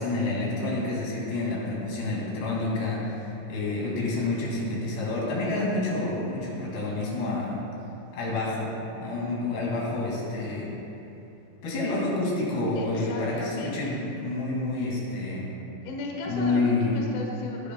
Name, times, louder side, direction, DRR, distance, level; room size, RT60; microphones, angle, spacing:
voice 1, 0.0-7.6 8.1-8.7 9.0-10.7 11.6-15.5 16.3-17.0, left 2 dB, 65° left, -5 dB, 4.3 m, -28 dB
voice 2, 12.7-13.8 15.8-17.7, left 2 dB, 80° left, -1 dB, 1.7 m, -36 dB
19.5 x 9.9 x 2.3 m, 3.0 s
omnidirectional pair, 5.4 m